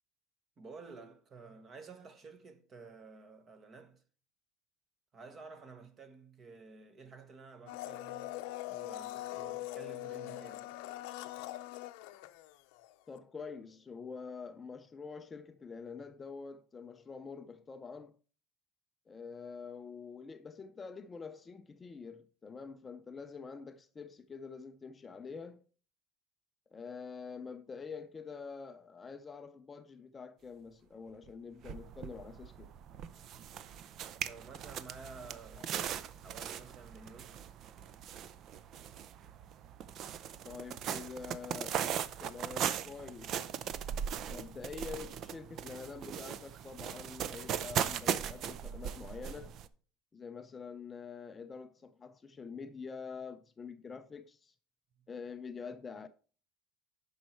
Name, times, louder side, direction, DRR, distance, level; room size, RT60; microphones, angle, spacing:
voice 1, 0.6-4.0 5.1-8.3 8.7-10.7 34.2-35.7 36.2-37.4 55.0-55.1, right 4 dB, 30° right, 1.2 m, -52 dB
Domestic sounds home sounds, 7.7-12.9 13.2-13.3, left 16 dB, 80° left, 0.6 m, -42 dB
voice 2, 13.1-18.2 19.1-25.6 26.7-32.7 35.6-36.0 40.4-43.7 44.3-49.6 50.1-54.5 55.1-56.1, left 5 dB, 20° left, 0.4 m, -46 dB
sound 1, 31.3-31.4 31.6-49.7, right 9 dB, 45° right, 0.5 m, -39 dB
10.5 x 5.4 x 4.5 m
cardioid pair, 150°, 0 cm